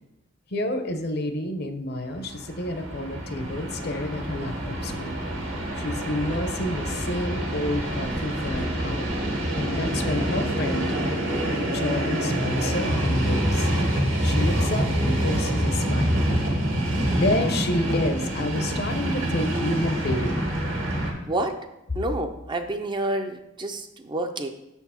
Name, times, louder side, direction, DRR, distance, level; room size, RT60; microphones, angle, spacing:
voice 1, 0.5-5.2 5.8-9.2 9.6-10.9 11.7-13.7 14.2-16.2 17.1-20.4, left 1 dB, 55° left, 8 dB, 0.7 m, -29 dB
Train, 2.1-21.1, equal, 70° right, 1.7 m, -26 dB
voice 2, 21.3-21.7 21.9-24.5, right 1 dB, 25° right, 6 dB, 0.5 m, -29 dB
6.8 x 4.5 x 5.6 m, 0.91 s
head